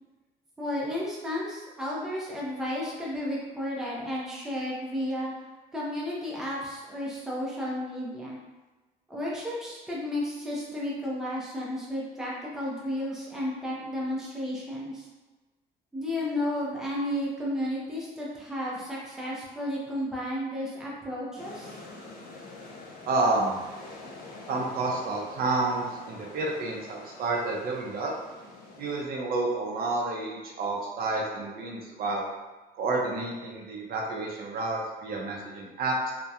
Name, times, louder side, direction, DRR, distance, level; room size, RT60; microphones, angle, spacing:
voice 1, 0.6-5.3 5.7-8.4 9.1-15.1 15.9-21.8, left 1 dB, 5° right, -5 dB, 0.5 m, -33 dB
sound 1, 21.4-29.0, left 2 dB, 55° left, 0.4 m, -46 dB
voice 2, 23.1-23.6 24.5-28.1 28.8-32.3 32.8-36.1, right 2 dB, 60° right, -1 dB, 0.5 m, -30 dB
2.7 x 2.1 x 2.3 m, 1.2 s
cardioid pair, 140°, 18 cm